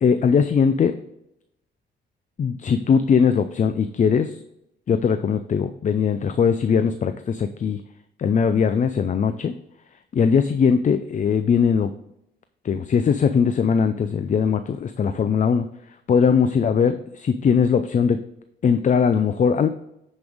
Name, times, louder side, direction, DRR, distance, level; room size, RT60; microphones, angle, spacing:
voice 1, 0.0-1.0 2.4-4.4 4.9-7.8 8.2-9.5 10.1-11.9 12.6-15.7 16.1-18.2 18.6-19.7, left 6 dB, 40° left, 10 dB, 0.5 m, -20 dB
9.8 x 5.3 x 3.5 m, 0.83 s
cardioid pair, 90°, 20 cm